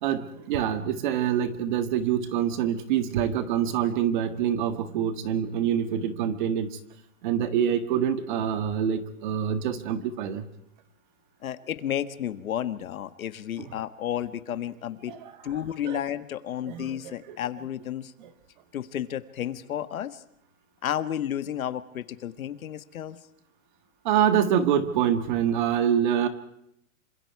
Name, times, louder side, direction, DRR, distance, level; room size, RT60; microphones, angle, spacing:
voice 1, 0.0-6.7 7.2-10.5 15.1-15.3 15.9-16.0 16.7-17.4 18.2-18.3 24.0-26.3, right 9 dB, 35° right, 10 dB, 1.7 m, -26 dB
voice 2, 11.4-18.1 18.7-20.2 20.8-23.2, left 10 dB, 75° left, 12 dB, 1.7 m, -32 dB
27.5 x 25.5 x 4.8 m, 0.77 s
hypercardioid pair, 170°, 42 cm